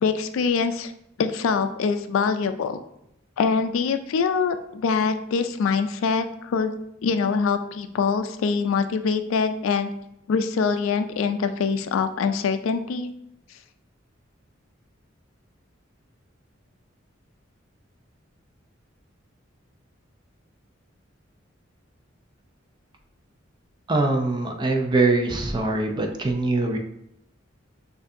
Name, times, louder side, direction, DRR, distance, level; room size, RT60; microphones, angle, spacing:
voice 1, 0.0-0.9 1.2-2.8 3.4-6.7 7.0-9.9 10.3-13.1, left 5 dB, 80° left, 9 dB, 0.3 m, -24 dB
voice 2, 23.9-26.8, right 3 dB, 25° right, 3 dB, 0.4 m, -23 dB
6.3 x 2.6 x 2.6 m, 0.78 s
head